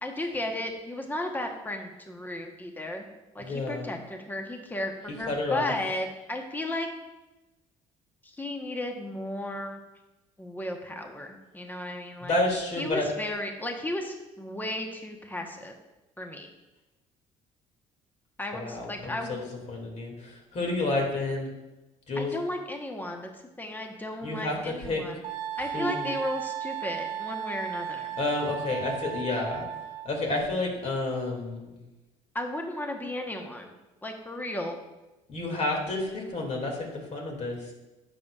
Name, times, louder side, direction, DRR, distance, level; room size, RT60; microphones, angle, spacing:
voice 1, 0.0-3.1 3.3-6.9 8.2-9.8 10.4-12.4 12.8-15.7 16.2-16.5 18.4-19.4 22.2-25.2 25.6-28.2 32.3-33.7 34.0-34.8, left 1 dB, 10° left, 3 dB, 1.1 m, -34 dB
voice 2, 3.4-3.9 5.1-5.7 12.2-13.1 18.5-21.5 22.1-22.3 24.2-25.0 25.7-26.1 28.2-29.6 30.0-31.8 35.3-37.7, left 2 dB, 45° left, 0 dB, 2.4 m, -30 dB
Wind instrument woodwind instrument, 25.2-30.1, right 9 dB, 70° right, 1.3 m, -35 dB
10.5 x 6.7 x 2.4 m, 1.0 s
supercardioid pair, 70°, 16 cm